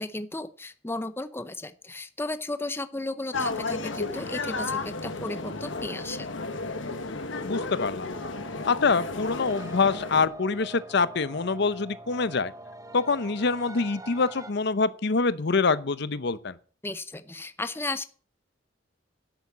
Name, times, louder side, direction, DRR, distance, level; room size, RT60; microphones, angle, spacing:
voice 1, 0.0-6.3 16.8-18.1, left 2 dB, 10° left, 0.7 m, -34 dB
sound 1, 3.3-10.3, left 3 dB, 85° left, 1.4 m, -33 dB
voice 2, 7.4-8.1 8.7-12.5 12.9-16.6, left 4 dB, 65° left, 0.7 m, -25 dB
sound 2, 8.1-14.5, right 1 dB, 20° right, 1.1 m, -44 dB
11.0 x 8.5 x 7.3 m
head